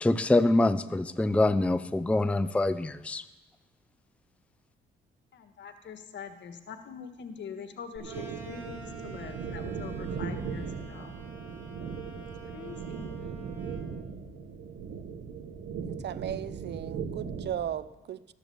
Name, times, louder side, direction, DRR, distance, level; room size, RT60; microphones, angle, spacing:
voice 1, 0.0-3.2, left 2 dB, 5° left, 13 dB, 0.5 m, -25 dB
voice 2, 5.3-11.2 12.5-13.2, left 7 dB, 65° left, 8 dB, 1.5 m, -44 dB
sound 1, 8.0-13.9, right 2 dB, 10° right, 4.8 m, -49 dB
sound 2, 8.0-17.6, right 6 dB, 85° right, 1.6 m, -38 dB
voice 3, 15.8-18.3, right 10 dB, 60° right, 16 dB, 0.7 m, -36 dB
13.5 x 10.0 x 7.0 m, 1.0 s
cardioid pair, 90°, 20 cm